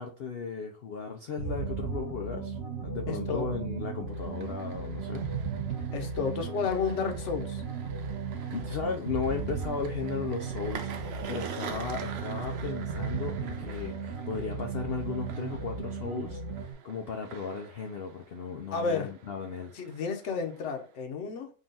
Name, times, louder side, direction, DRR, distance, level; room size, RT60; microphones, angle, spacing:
voice 1, 0.0-2.6 2.8-5.3 8.5-19.7, left 5 dB, 75° left, 0.5 m, -36 dB
sound 1, 1.4-16.7, right 5 dB, 50° right, 1.0 m, -36 dB
voice 2, 3.1-3.5 5.9-7.6 18.7-19.1 19.7-21.5, left 5 dB, 55° left, 0.9 m, -31 dB
sound 2, 4.1-21.0, right 7 dB, 70° right, 0.6 m, -47 dB
3.8 x 2.4 x 3.8 m
omnidirectional pair, 1.7 m